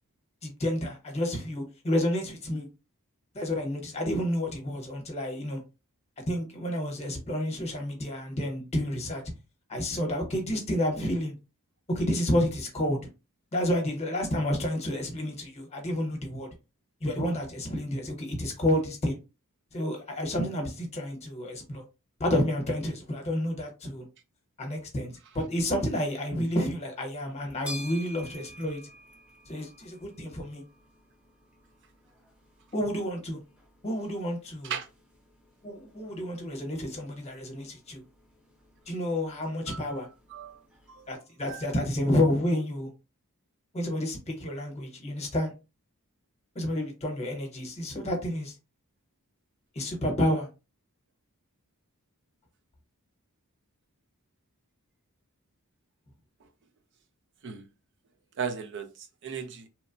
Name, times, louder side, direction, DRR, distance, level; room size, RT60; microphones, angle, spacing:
voice 1, 0.4-2.7 3.3-5.6 6.3-9.2 9.7-11.3 11.9-13.0 13.5-16.5 17.0-19.2 19.7-21.8 22.2-24.1 24.6-28.8 29.5-30.6 32.7-33.4 33.8-34.7 35.6-38.0 38.9-40.1 41.1-42.9 43.7-45.5 46.5-48.5 49.7-50.5, left 1 dB, 30° left, 0.9 m, -30 dB
sound 1, 27.3-41.1, equal, 5° right, 0.7 m, -50 dB
voice 2, 39.7-40.6 40.9-41.2 41.5-41.6 57.4-57.6 58.4-59.7, right 6 dB, 55° right, 0.4 m, -37 dB
3.0 x 2.0 x 2.5 m
head